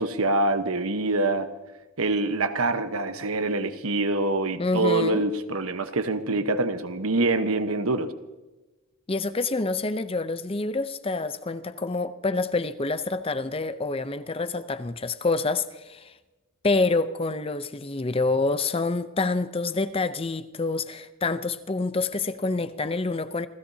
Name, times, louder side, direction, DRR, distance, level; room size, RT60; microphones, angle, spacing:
voice 1, 0.0-1.5 2.0-8.1, right 2 dB, 85° right, 1.2 m, -25 dB
voice 2, 4.6-5.2 9.1-16.1 16.6-23.5, left 3 dB, 25° left, 0.6 m, -27 dB
28.5 x 16.0 x 2.8 m
head